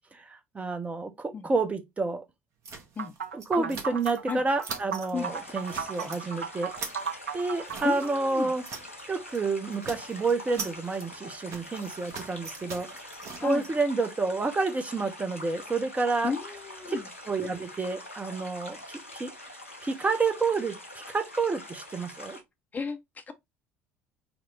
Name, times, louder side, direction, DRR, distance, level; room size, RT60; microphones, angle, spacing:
voice 1, 0.2-2.2 3.3-6.7 7.3-8.6 9.1-16.3 16.9-17.0 17.3-18.8 19.2-19.3 19.8-22.4, right 3 dB, 20° right, 0.7 m, -29 dB
sound 1, 2.6-4.3 4.6-5.1 5.5-6.2 6.5-9.0 9.3-9.5 9.7-13.7, right 5 dB, 45° right, 0.9 m, -42 dB
sound 2, 3.0-8.1, right 7 dB, 75° right, 0.4 m, -36 dB
sound 3, 5.1-22.4, left 1 dB, 85° left, 0.7 m, -44 dB
voice 2, 7.8-8.5 13.4-13.7 16.2-17.1 22.7-23.3, left 5 dB, 25° left, 0.6 m, -33 dB
4.4 x 2.1 x 3.7 m
figure-of-eight pair, 60°, 7 cm